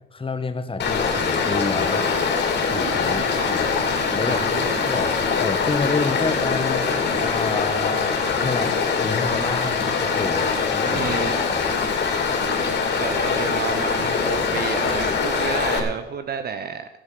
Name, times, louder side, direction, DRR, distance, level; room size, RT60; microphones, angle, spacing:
voice 1, 0.1-2.1 2.5-3.7 4.1-5.1 5.4-11.7, left 4 dB, 25° left, 8 dB, 1.6 m, -29 dB
Stream, 0.8-15.8, left 5 dB, 65° left, 3.9 m, -23 dB
voice 2, 4.2-4.8 10.9-11.3 13.0-16.9, right 7 dB, 50° right, 9 dB, 0.9 m, -31 dB
17.5 x 6.7 x 6.7 m, 0.95 s
cardioid pair, 90°, 20 cm